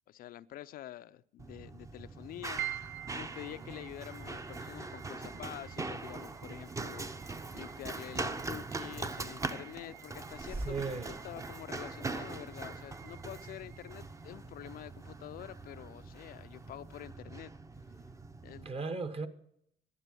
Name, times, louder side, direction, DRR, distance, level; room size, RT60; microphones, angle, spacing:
voice 1, 0.1-2.6 3.1-17.5 18.4-18.7, left 13 dB, 60° left, 0.4 m, -47 dB
Run, 1.4-18.7, right 3 dB, 20° right, 0.7 m, -42 dB
sound 1, 2.6-17.0, right 13 dB, 75° right, 0.4 m, -50 dB
voice 2, 10.6-11.1 18.6-19.3, right 4 dB, 35° right, 1.2 m, -37 dB
11.5 x 9.7 x 7.6 m
cardioid pair, 110°, 17 cm